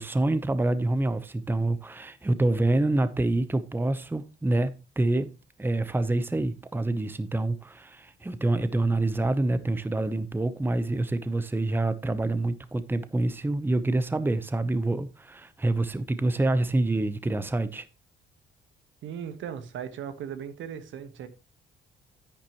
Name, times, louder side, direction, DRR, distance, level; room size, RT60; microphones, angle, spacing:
voice 1, 0.0-5.3 5.6-17.9, right 2 dB, 10° right, 0.8 m, -26 dB
voice 2, 19.0-21.3, right 8 dB, 75° right, 1.3 m, -37 dB
10.0 x 9.3 x 3.0 m
cardioid pair, 90°, 20 cm